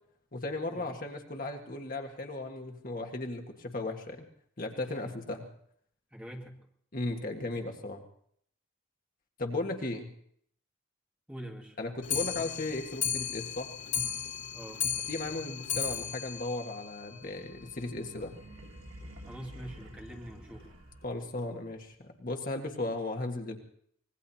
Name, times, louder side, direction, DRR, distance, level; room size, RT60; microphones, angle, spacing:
voice 1, 0.3-4.3 4.6-5.5 6.9-8.0 9.4-10.1 11.8-13.7 15.1-18.4 21.0-23.6, left 2 dB, 45° left, 3 dB, 1.6 m, -36 dB
voice 2, 4.8-5.2 6.1-6.6 11.3-11.8 14.5-14.8 19.2-20.7, equal, 5° right, 0 dB, 1.9 m, -44 dB
Clock, 12.0-17.5 17.9-18.0 18.2-18.3 18.6-18.7 19.0-19.1 19.8-19.9 20.6-20.7 21.4-21.5, left 8 dB, 85° left, 1.8 m, -35 dB
sound 1, 17.1-21.4, right 1 dB, 75° right, 2.7 m, -50 dB
25.5 x 20.0 x 2.8 m, 0.63 s
head